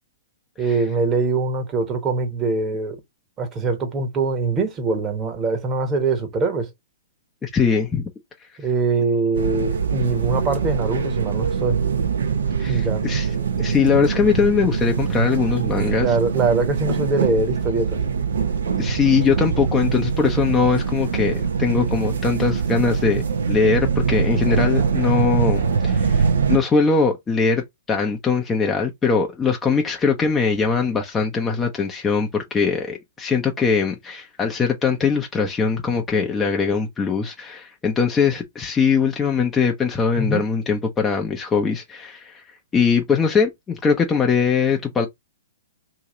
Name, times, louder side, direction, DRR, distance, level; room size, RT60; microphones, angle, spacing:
voice 1, 0.6-3.0 3.4-6.7 8.6-11.8 12.7-13.1 16.0-18.0 40.2-40.5, right 3 dB, 25° right, 1.2 m, -23 dB
voice 2, 7.4-8.1 12.6-13.3 13.6-16.2 18.8-23.2 23.5-42.4 42.7-45.1, left 5 dB, 15° left, 0.6 m, -21 dB
sound 1, 9.3-26.6, right 6 dB, 70° right, 0.8 m, -23 dB
3.0 x 2.8 x 3.8 m
figure-of-eight pair, 120°, 0 cm